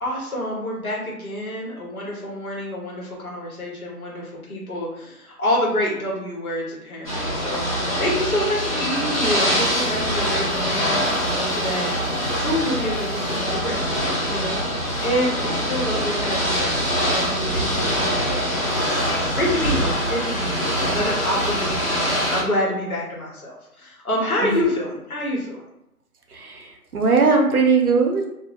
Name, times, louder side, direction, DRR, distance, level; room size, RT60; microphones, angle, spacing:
voice 1, 0.0-25.6, left 1 dB, 65° left, -4 dB, 1.1 m, -28 dB
Ocean / Boat Water vehicle, 7.0-22.4, equal, 25° left, 0.7 m, -24 dB
voice 2, 26.3-28.3, right 4 dB, 70° right, 2 dB, 0.7 m, -19 dB
2.4 x 2.0 x 2.9 m, 0.86 s
figure-of-eight pair, 160°, 46 cm